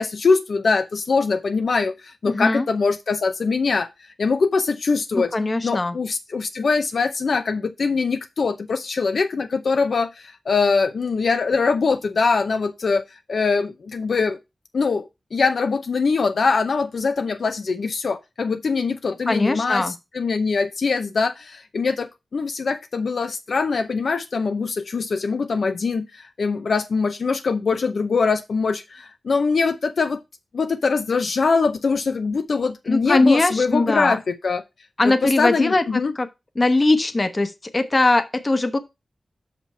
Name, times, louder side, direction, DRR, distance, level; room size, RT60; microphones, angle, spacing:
voice 1, 0.0-3.9 4.2-5.3 5.6-13.0 13.3-14.4 14.7-30.2 30.5-34.6 35.0-36.1, left 4 dB, 75° left, 0.7 m, -22 dB
voice 2, 2.3-2.7 5.1-5.9 19.3-19.9 32.9-34.2 35.0-36.3 36.6-38.8, left 2 dB, 35° left, 1.0 m, -20 dB
5.9 x 5.2 x 5.6 m
wide cardioid pair, 70°, 0 cm